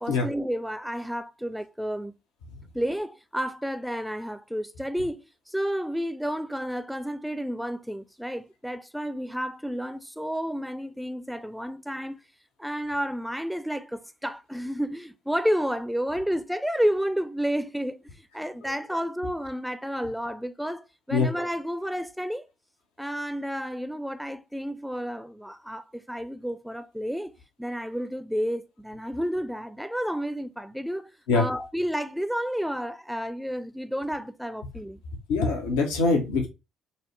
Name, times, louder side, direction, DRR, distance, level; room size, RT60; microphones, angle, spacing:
voice 1, 0.0-2.1 2.7-12.2 12.6-18.0 18.3-22.5 23.0-27.3 27.6-35.0, equal, ahead, 0.5 m, -31 dB
voice 2, 35.3-36.5, left 4 dB, 75° left, 0.8 m, -23 dB
5.3 x 2.0 x 3.2 m
hypercardioid pair, 50°, 0 cm